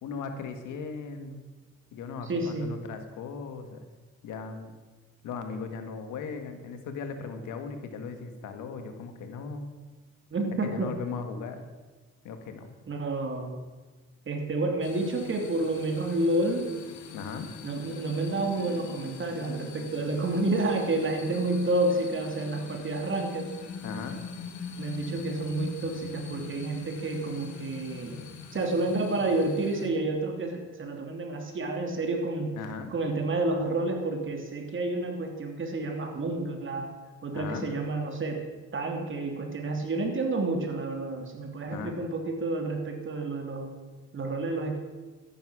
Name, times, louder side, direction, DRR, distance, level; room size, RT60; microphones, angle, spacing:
voice 1, 0.0-1.4 1.9-3.9 4.2-4.8 5.2-9.7 10.7-11.6 12.2-12.7 17.1-17.5 23.8-24.2 32.6-32.9 37.3-37.7 41.7-42.0, left 5 dB, 90° left, 7 dB, 1.8 m, -38 dB
voice 2, 2.2-2.7 10.3-10.9 12.9-13.6 14.2-16.7 17.6-23.5 24.8-32.5 32.9-36.9 37.2-38.4 38.7-43.7 44.1-44.8, right 2 dB, 40° right, 3 dB, 3.0 m, -30 dB
sound 1, 14.8-29.9, left 6 dB, 70° left, 1.7 m, -42 dB
13.5 x 10.5 x 6.2 m, 1.3 s
cardioid pair, 90°, 30 cm